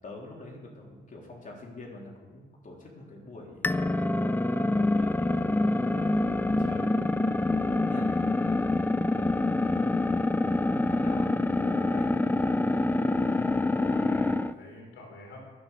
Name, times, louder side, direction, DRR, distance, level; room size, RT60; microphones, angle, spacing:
voice 1, 0.0-9.3 10.3-12.1 13.3-13.6, left 2 dB, 40° left, -1 dB, 3.5 m, -46 dB
sound 1, 3.6-14.5, left 2 dB, 10° left, 0.5 m, -26 dB
voice 2, 13.7-15.4, left 2 dB, 80° left, 1 dB, 3.8 m, -47 dB
11.5 x 9.3 x 7.0 m, 1.4 s
cardioid pair, 90°, 20 cm